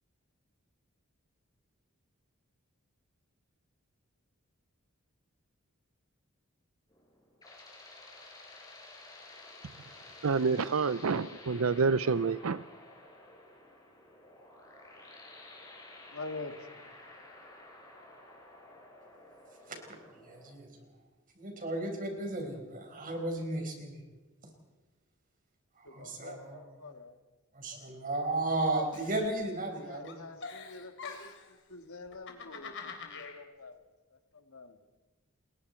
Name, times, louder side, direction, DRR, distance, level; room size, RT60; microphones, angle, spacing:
sound 1, 6.9-20.5, left 2 dB, 20° left, 5.0 m, -52 dB
voice 1, 10.2-12.6, right 4 dB, 70° right, 0.5 m, -28 dB
voice 2, 16.1-16.9 25.8-27.2 28.0-28.1 29.8-33.8 34.1-34.8, left 3 dB, 85° left, 1.9 m, -46 dB
voice 3, 20.1-20.7 21.4-24.0 25.8-26.6 27.5-30.2, right 2 dB, 40° right, 4.9 m, -34 dB
Giggle, 28.9-29.8 30.0-31.5 32.1-33.4, left 5 dB, 60° left, 3.3 m, -44 dB
28.0 x 22.0 x 4.5 m
head